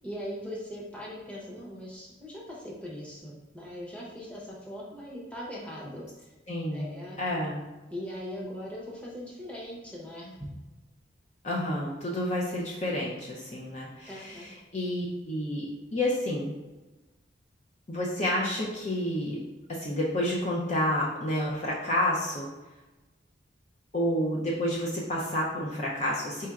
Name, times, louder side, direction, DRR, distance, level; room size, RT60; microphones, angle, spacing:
voice 1, 0.0-6.3 6.7-7.2 7.9-10.6 14.1-14.5, equal, 5° left, -5 dB, 0.8 m, -40 dB
voice 2, 6.5-6.9 7.2-7.6 11.4-16.5 17.9-19.4 19.7-22.5 23.9-26.5, left 1 dB, 35° left, -4 dB, 0.6 m, -30 dB
4.3 x 4.3 x 2.4 m, 1.1 s
head